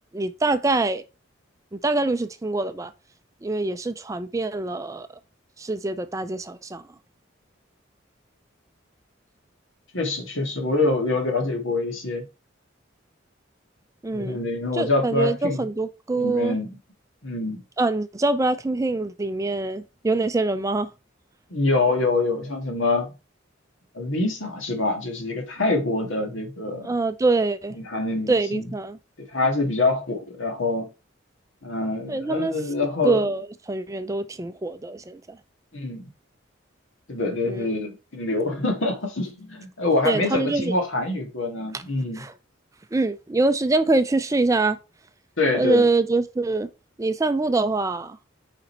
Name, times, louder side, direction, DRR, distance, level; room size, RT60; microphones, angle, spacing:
voice 1, 0.1-1.0 1.7-2.9 3.4-5.1 5.6-6.8 14.0-14.4 14.7-16.6 17.8-20.9 26.8-27.8 28.3-29.0 32.1-32.6 33.0-35.4 37.5-37.9 40.0-40.7 41.7-41.8 42.2-42.3 42.9-44.8 45.5-46.7 47.0-48.2, right 3 dB, 15° right, 0.4 m, -24 dB
voice 2, 9.9-12.3 14.1-15.7 16.2-16.7 17.2-17.6 21.5-23.1 23.9-26.9 27.8-28.7 29.2-30.9 31.6-33.3 35.7-36.1 37.1-42.2 45.4-45.8, left 2 dB, 80° left, 1.9 m, -25 dB
5.2 x 5.0 x 4.4 m
head